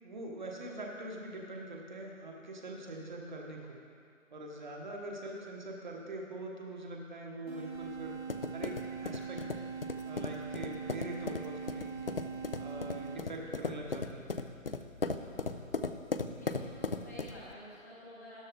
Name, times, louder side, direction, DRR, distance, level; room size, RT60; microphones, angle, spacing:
voice 1, 0.0-3.8 4.3-8.2 8.5-9.4 10.0-12.0 12.6-14.2, right 1 dB, 35° right, 0 dB, 1.3 m, -43 dB
sound 1, 7.5-13.5, right 6 dB, 50° right, 2.5 m, -42 dB
sound 2, 7.7-17.5, left 3 dB, 45° left, 0.4 m, -38 dB
voice 2, 15.2-15.7 16.4-18.4, equal, 10° left, -9 dB, 0.8 m, -50 dB
13.0 x 11.0 x 3.6 m, 2.3 s
figure-of-eight pair, 150°, 41 cm